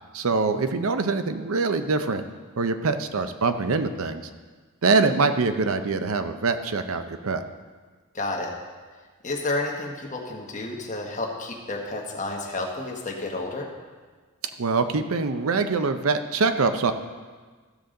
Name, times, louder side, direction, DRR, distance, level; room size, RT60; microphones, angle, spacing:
voice 1, 0.1-2.2 2.6-4.3 4.8-7.4 14.6-16.9, right 4 dB, 80° right, 9 dB, 0.6 m, -24 dB
voice 2, 8.1-8.5 9.2-13.7, left 2 dB, 35° left, 0 dB, 1.4 m, -30 dB
14.5 x 7.0 x 3.8 m, 1.4 s
head